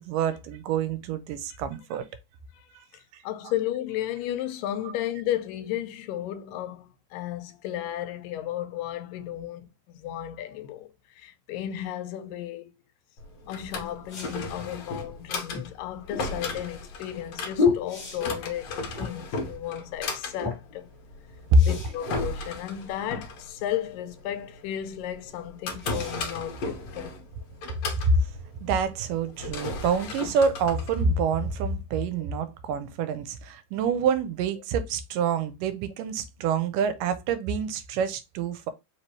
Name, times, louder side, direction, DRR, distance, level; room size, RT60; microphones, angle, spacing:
voice 1, 0.0-2.1 2.8-2.9 3.1-3.2 21.5-21.7 28.0-28.3 28.6-38.7, right 4 dB, 85° right, 2.2 m, -26 dB
voice 2, 2.9-12.7 13.4-20.9 21.6-27.1, left 12 dB, 85° left, 2.3 m, -34 dB
Drawer open or close, 13.2-31.7, left 3 dB, 65° left, 1.8 m, -36 dB
sound 1, 14.1-14.5 17.2-17.3 17.7-18.4 21.5-22.1 23.1-23.2 25.8-26.4 29.9-30.0, left 3 dB, 45° left, 1.9 m, -45 dB
sound 2, 14.6-14.7 15.5-18.6 18.9-19.4 19.7-19.8 20.1-20.8 21.5-22.3 22.9-23.1, left 5 dB, 20° left, 1.3 m, -30 dB
5.0 x 3.0 x 3.0 m
omnidirectional pair, 3.9 m